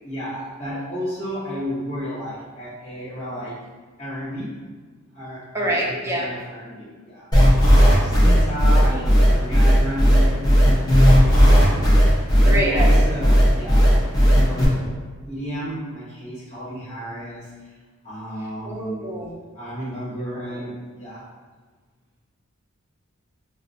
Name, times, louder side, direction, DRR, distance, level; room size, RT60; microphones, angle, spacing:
voice 1, 0.0-3.6 4.0-4.5 5.1-7.3 7.7-10.5 11.2-14.0 14.4-14.9 15.3-17.7 18.0-19.1 19.5-21.2, equal, 35° left, -12 dB, 1.3 m, -32 dB
voice 2, 5.5-6.3 7.7-7.8 8.8-9.1 12.4-13.1 18.4-19.3 20.4-20.7, right 1 dB, 10° right, -3 dB, 0.5 m, -27 dB
sound 1, 7.3-14.6, equal, 20° left, 0.7 m, -14 dB
5.0 x 2.2 x 2.6 m, 1.4 s
head